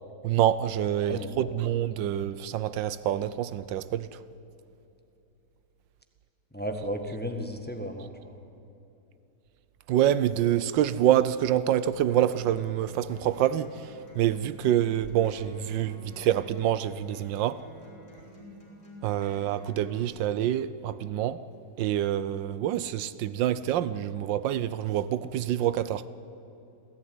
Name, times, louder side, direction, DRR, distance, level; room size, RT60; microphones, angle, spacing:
voice 1, 0.2-4.2 9.9-17.6 19.0-21.4 21.8-26.1, right 11 dB, 85° right, 1.4 m, -26 dB
voice 2, 1.1-1.5 6.5-8.4, equal, 5° left, 1.5 m, -34 dB
Acoustic guitar, 12.1-20.1, equal, 35° left, 5.1 m, -51 dB
27.0 x 16.0 x 9.5 m
omnidirectional pair, 1.9 m